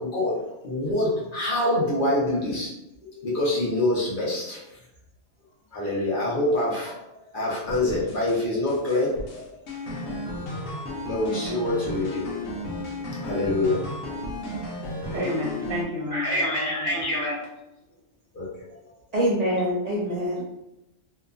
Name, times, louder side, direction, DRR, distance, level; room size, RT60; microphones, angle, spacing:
voice 1, 0.0-2.7 3.1-4.6 5.7-6.9 7.3-9.4 11.1-12.3 13.2-13.8 14.5-14.6 16.1-17.4 18.4-18.5, left 1 dB, 50° left, -6 dB, 0.9 m, -25 dB
sound 1, 7.7-8.4 8.7-15.8, left 1 dB, 85° left, 1.0 m, -34 dB
voice 2, 15.0-17.1, left 1 dB, 45° right, -6 dB, 0.8 m, -31 dB
voice 3, 19.1-20.4, equal, 80° right, -5 dB, 0.3 m, -24 dB
2.9 x 2.2 x 2.4 m, 0.91 s
omnidirectional pair, 1.3 m